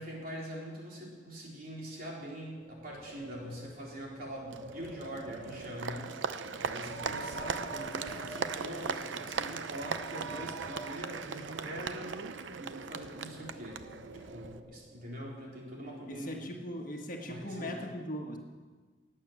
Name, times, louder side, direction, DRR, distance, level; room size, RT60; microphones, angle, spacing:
voice 1, 0.0-13.9 14.3-16.5 17.3-17.8, equal, 45° right, -2 dB, 3.8 m, -43 dB
Wind, 2.5-15.1, right 1 dB, 20° right, 3.9 m, -49 dB
Applause, 4.5-14.6, right 5 dB, 70° right, 0.7 m, -39 dB
voice 2, 16.1-18.4, equal, 45° left, 2 dB, 1.7 m, -39 dB
19.0 x 9.0 x 7.3 m, 1.4 s
head